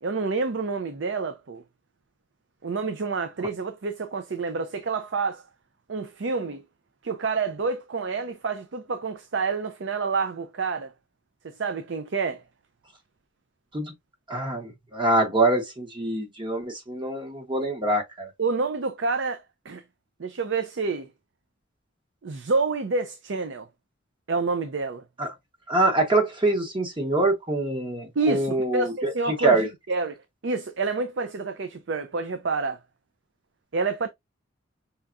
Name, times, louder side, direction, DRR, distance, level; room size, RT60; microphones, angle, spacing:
voice 1, 0.0-1.6 2.6-5.4 5.9-6.6 7.0-10.9 11.4-12.4 18.4-19.8 20.2-21.1 22.2-23.7 24.3-25.0 28.2-32.8 33.7-34.1, right 4 dB, 70° right, 0.6 m, -28 dB
voice 2, 14.3-18.3 25.2-25.3 25.7-29.1 29.4-29.7, right 2 dB, 25° right, 1.1 m, -24 dB
5.6 x 3.5 x 2.5 m
head